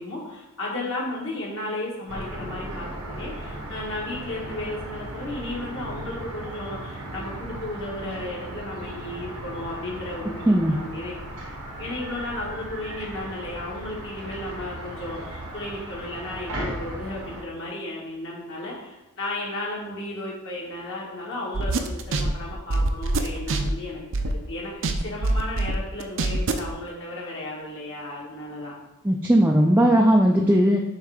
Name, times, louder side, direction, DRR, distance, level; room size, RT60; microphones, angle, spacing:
voice 1, 0.0-11.2 11.8-28.7, left 1 dB, 60° left, -4 dB, 1.7 m, -34 dB
sound 1, 2.1-17.4, right 1 dB, 75° right, 1.1 m, -37 dB
voice 2, 10.5-10.8 29.0-30.8, equal, 10° right, 0 dB, 0.4 m, -18 dB
sound 2, 21.5-24.5 24.8-26.7, right 2 dB, 60° right, 0.5 m, -24 dB
6.9 x 3.3 x 4.9 m, 0.98 s
head